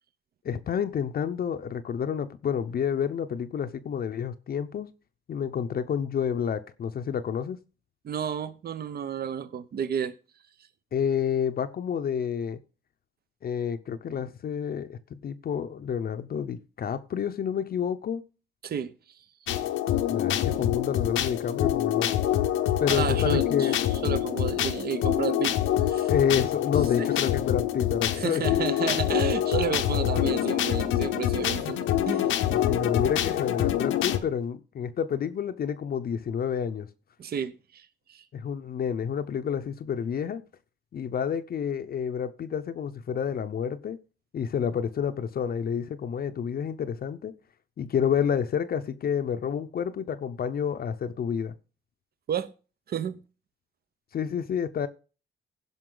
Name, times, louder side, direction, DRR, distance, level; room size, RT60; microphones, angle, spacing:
voice 1, 0.4-4.9 5.3-7.6 10.9-12.6 13.4-18.2 20.1-22.4 22.8-23.7 26.1-28.6 32.5-36.9 38.3-40.4 40.9-44.0 44.3-47.3 47.8-51.5 54.1-54.9, left 7 dB, 50° left, 0.7 m, -29 dB
voice 2, 8.0-10.1 18.6-18.9 22.9-25.6 25.9-26.1 27.0-27.1 28.1-32.3 37.2-38.2 52.3-52.5 52.9-53.2, right 8 dB, 50° right, 0.8 m, -32 dB
sound 1, 19.5-34.2, left 11 dB, 85° left, 0.9 m, -26 dB
16.0 x 5.4 x 3.9 m
cardioid pair, 90°, 20 cm